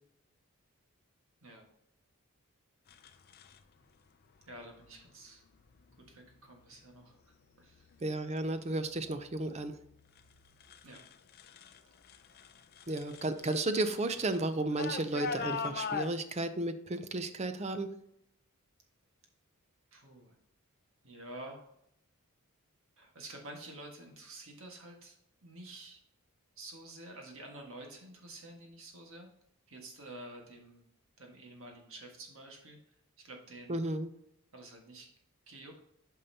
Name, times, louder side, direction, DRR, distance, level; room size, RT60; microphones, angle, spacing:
sound 1, 2.9-3.6 4.7-5.1 5.6-6.1 6.6-7.1 7.5-11.8 12.0-16.1, left 5 dB, 45° left, 0.5 m, -42 dB
voice 1, 4.5-5.4 6.1-7.9 10.8-11.0 19.9-20.4 21.0-21.7 23.0-25.1 25.4-26.0 26.6-29.3 29.7-30.8 31.2-32.8 33.2-33.8 34.5-35.1 35.5-35.8, right 1 dB, 60° right, 1 dB, 1.6 m, -49 dB
voice 2, 8.0-9.7 12.9-17.9 33.7-34.1, right 2 dB, 30° right, 10 dB, 0.5 m, -33 dB
8.7 x 5.5 x 2.8 m, 0.75 s
head